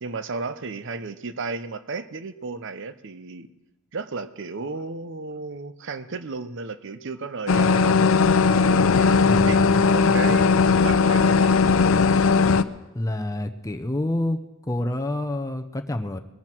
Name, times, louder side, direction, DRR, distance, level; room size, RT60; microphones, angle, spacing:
voice 1, 0.0-3.5 3.9-8.0 8.9-9.6 9.9-11.6, right 4 dB, 60° right, 12 dB, 0.8 m, -34 dB
sound 1, 7.5-12.6, left 5 dB, 75° left, 0.6 m, -18 dB
voice 2, 9.2-9.7 12.9-14.4 14.7-16.2, left 1 dB, 15° left, 6 dB, 0.6 m, -28 dB
20.0 x 12.0 x 4.5 m, 1.0 s
head